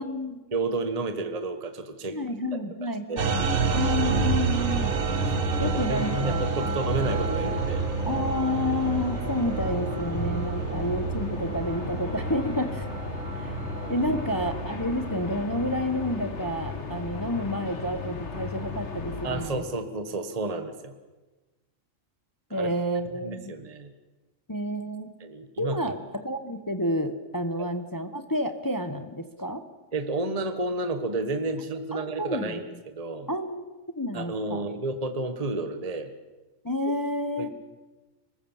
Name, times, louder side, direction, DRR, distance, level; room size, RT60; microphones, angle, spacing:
voice 1, 0.0-0.4 2.1-3.4 3.7-4.9 5.6-6.4 8.1-12.9 13.4-13.6 13.9-19.6 22.5-23.5 24.5-25.1 25.6-29.6 31.9-32.6 33.3-33.7 33.9-34.6 36.6-37.5, left 1 dB, 15° left, 8 dB, 1.1 m, -30 dB
voice 2, 0.5-2.2 3.1-3.3 5.4-7.8 13.8-13.9 19.2-20.9 22.5-22.7 23.2-23.9 25.2-25.9 27.6-27.7 29.9-33.3 34.1-36.1 37.4-37.5, right 2 dB, 30° right, 7 dB, 1.3 m, -31 dB
sound 1, 3.2-19.5, left 4 dB, 60° left, 2.0 m, -36 dB
sound 2, 3.2-15.8, right 5 dB, 80° right, 1.6 m, -29 dB
24.0 x 20.0 x 7.3 m, 1.2 s
omnidirectional pair, 1.4 m